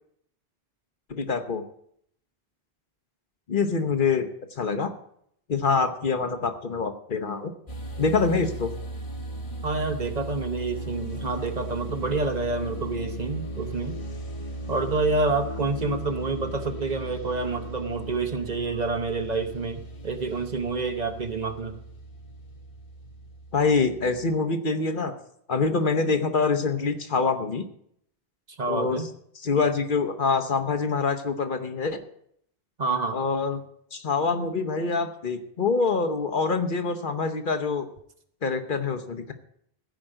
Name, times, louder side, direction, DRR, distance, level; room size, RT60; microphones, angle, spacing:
voice 1, 1.1-1.6 3.5-4.3 4.6-4.9 5.5-7.5 8.0-8.7 23.5-25.1 25.5-27.6 28.7-29.0 29.3-32.0 33.1-33.6 33.9-37.9 38.4-39.3, left 4 dB, 55° left, 8 dB, 1.1 m, -25 dB
sound 1, 7.7-24.4, right 1 dB, 35° left, 1.3 m, -37 dB
voice 2, 9.6-14.0 14.7-21.8 28.6-29.1 32.8-33.2, right 3 dB, 45° right, 8 dB, 1.0 m, -28 dB
15.0 x 5.2 x 8.9 m, 0.70 s
omnidirectional pair, 1.0 m